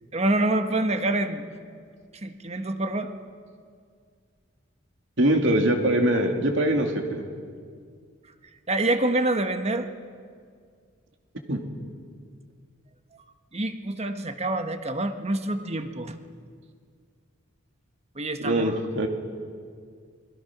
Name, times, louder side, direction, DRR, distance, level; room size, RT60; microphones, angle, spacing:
voice 1, 0.1-1.4 2.2-3.1 8.7-9.9 13.5-16.2 18.1-18.7, right 2 dB, 35° right, 7 dB, 1.3 m, -26 dB
voice 2, 5.2-7.2 11.5-11.6 18.4-19.1, right 1 dB, 65° right, 4 dB, 2.6 m, -23 dB
29.0 x 21.5 x 6.1 m, 2.1 s
head